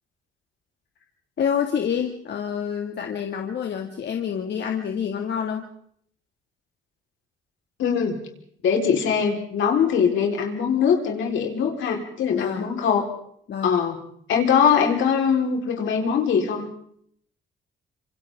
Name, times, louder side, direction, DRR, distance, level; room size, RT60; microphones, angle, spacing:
voice 1, 1.4-5.7 12.3-12.7 13.5-13.8, left 8 dB, 60° left, 3 dB, 2.1 m, -27 dB
voice 2, 7.8-8.2 8.6-13.1 13.6-14.0 14.3-16.7, left 7 dB, 75° left, 2 dB, 4.1 m, -22 dB
27.0 x 26.0 x 3.7 m, 0.65 s
cardioid pair, 90°, 20 cm